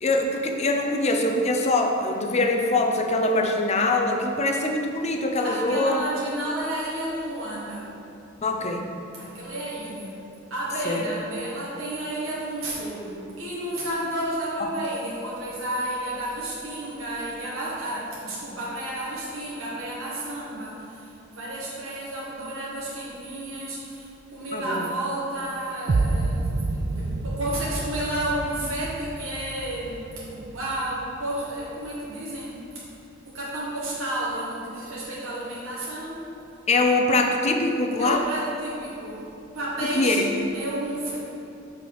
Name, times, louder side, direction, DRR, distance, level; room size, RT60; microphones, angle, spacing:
voice 1, 0.0-6.0 8.4-8.9 10.8-11.0 24.5-24.9 26.4-26.6 36.7-38.2 39.8-40.3, left 2 dB, 35° left, 3 dB, 0.6 m, -23 dB
voice 2, 5.4-8.0 9.2-10.2 10.5-32.6 33.2-36.4 38.0-41.2, right 1 dB, 80° right, -7 dB, 1.4 m, -31 dB
sound 1, 25.9-31.9, right 3 dB, 40° right, 0.3 m, -29 dB
6.1 x 5.7 x 4.7 m, 2.7 s
head